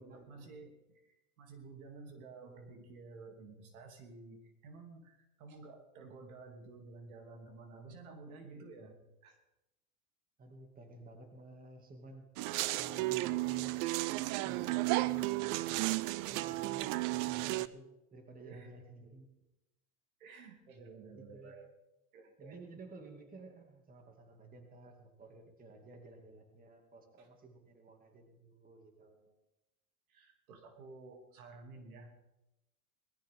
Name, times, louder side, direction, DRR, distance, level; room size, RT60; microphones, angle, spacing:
voice 1, 0.0-9.4 18.4-18.7 20.2-21.7 22.1-22.6 27.2-27.3 30.1-32.1, right 3 dB, 75° right, 4 dB, 3.1 m, -52 dB
voice 2, 10.4-12.3 12.8-13.8 14.4-19.3 21.1-21.5 22.4-29.3, right 2 dB, 20° right, 4 dB, 2.5 m, -54 dB
sound 1, 12.4-17.7, right 19 dB, 45° right, 0.6 m, -33 dB
20.0 x 14.0 x 3.8 m, 0.92 s
hypercardioid pair, 115°, 42 cm